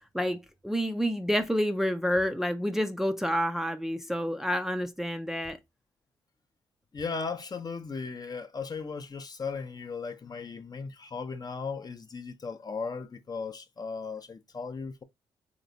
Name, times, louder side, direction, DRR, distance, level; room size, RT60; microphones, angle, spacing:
voice 1, 0.6-5.6, equal, 5° right, 0.5 m, -28 dB
voice 2, 6.9-15.0, left 5 dB, 35° left, 0.7 m, -37 dB
3.3 x 2.9 x 2.6 m
hypercardioid pair, 50°, 11 cm